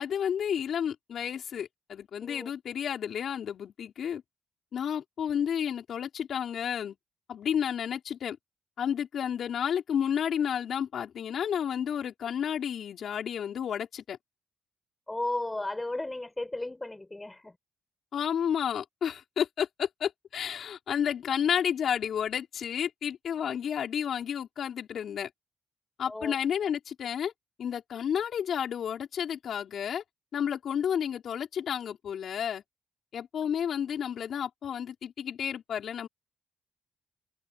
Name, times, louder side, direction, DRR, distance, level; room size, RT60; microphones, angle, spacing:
voice 1, 0.0-4.2 4.7-7.0 7.3-8.4 8.8-14.2 18.1-25.3 26.0-27.3 27.6-30.0 30.3-32.6 33.1-36.1, left 8 dB, 70° left, 5.5 m, -31 dB
voice 2, 15.1-17.6 26.0-26.3, left 2 dB, 15° left, 4.8 m, -34 dB
cardioid pair, 75°, 0 cm